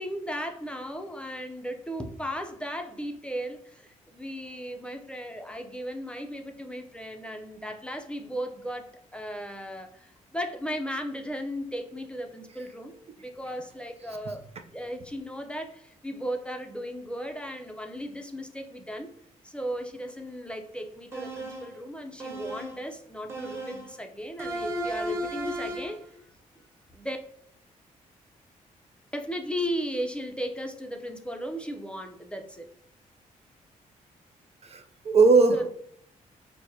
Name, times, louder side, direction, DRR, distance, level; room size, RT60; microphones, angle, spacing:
voice 1, 0.0-12.9 13.2-14.4 14.7-19.1 19.4-26.1 26.9-27.2 29.1-32.7 35.5-35.7, equal, 5° left, 4 dB, 0.5 m, -36 dB
sound 1, 21.1-21.8 22.2-22.9 23.3-24.0 24.4-26.0, right 1 dB, 15° right, 0.9 m, -34 dB
voice 2, 34.6-35.7, right 4 dB, 45° right, 5 dB, 0.4 m, -20 dB
4.5 x 2.2 x 2.7 m, 0.68 s
supercardioid pair, 60°, 15 cm